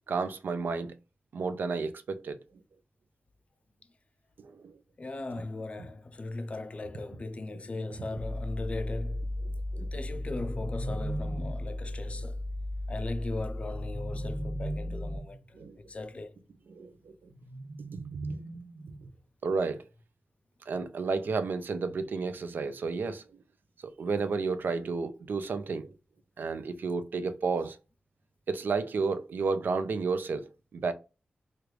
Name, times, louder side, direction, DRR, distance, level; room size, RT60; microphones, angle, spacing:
voice 1, 0.1-1.0 1.3-2.4 4.4-4.7 9.7-9.9 15.5-15.7 16.7-17.1 18.2-18.4 19.4-19.8 20.7-23.2 24.0-25.9 26.4-27.8 28.5-30.9, right 4 dB, 75° right, 0.5 m, -31 dB
voice 2, 5.0-9.3 9.9-12.4 12.9-15.4 15.9-16.4, left 2 dB, 40° left, 0.4 m, -38 dB
sound 1, 8.2-15.2, left 1 dB, 10° right, 0.5 m, -35 dB
sound 2, 9.9-11.7 13.6-15.4 17.3-19.2, right 2 dB, 55° right, 1.2 m, -40 dB
3.2 x 2.5 x 3.1 m
wide cardioid pair, 110°, 3 cm